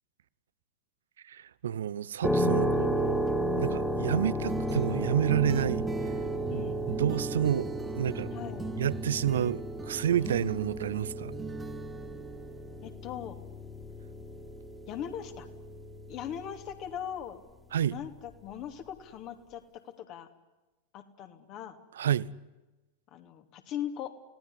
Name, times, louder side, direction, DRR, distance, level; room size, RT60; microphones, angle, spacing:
voice 1, 1.2-3.2 3.6-6.1 6.5-8.3 8.8-11.3 17.7-18.0 22.0-22.3, right 10 dB, 65° right, 0.8 m, -30 dB
sound 1, 2.2-16.9, equal, 5° left, 2.8 m, -33 dB
sound 2, 4.5-12.9, right 3 dB, 10° right, 1.4 m, -40 dB
voice 2, 8.3-8.7 10.2-10.5 12.8-13.4 14.9-15.5 16.1-17.4 17.9-20.3 20.9-21.8 23.1-24.1, left 9 dB, 40° left, 2.9 m, -40 dB
30.0 x 18.5 x 10.0 m
figure-of-eight pair, 90°, 0 cm